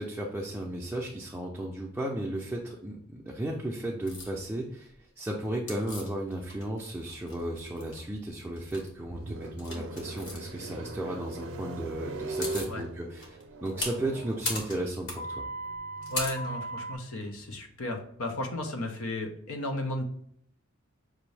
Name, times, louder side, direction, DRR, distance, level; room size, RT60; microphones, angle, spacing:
voice 1, 0.0-15.4, right 1 dB, 5° right, -3 dB, 0.5 m, -35 dB
sound 1, 4.1-4.3 5.7-6.8 7.1-8.0 8.5-8.9 9.6-10.4 11.9-12.0 12.2-12.7 13.2-17.0, left 1 dB, 55° left, 1.3 m, -37 dB
sound 2, 8.6-18.6, right 2 dB, 60° right, 0.5 m, -41 dB
voice 2, 16.1-20.0, left 1 dB, 90° left, 3 dB, 0.8 m, -34 dB
6.0 x 2.7 x 3.3 m, 0.68 s
head